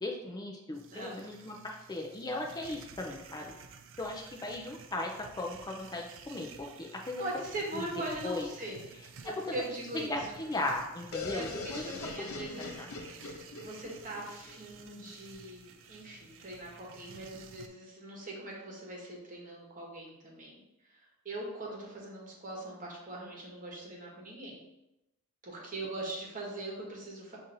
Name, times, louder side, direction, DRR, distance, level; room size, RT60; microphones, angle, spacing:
voice 1, 0.0-3.5 4.0-7.4 7.7-7.9 8.2-8.5 9.9-11.9 12.4-12.8, left 2 dB, 20° left, 0 dB, 0.4 m, -37 dB
sound 1, 0.7-17.7, right 5 dB, 60° right, 0.4 m, -52 dB
voice 2, 0.9-1.2 7.2-8.8 9.2-10.2 11.3-11.7 12.0-12.8 13.2-20.6 21.2-24.6 25.4-27.4, right 1 dB, 40° right, -2 dB, 1.1 m, -41 dB
sound 2, 11.1-14.9, left 3 dB, 80° left, 0.5 m, -42 dB
7.1 x 2.6 x 2.6 m, 0.92 s
head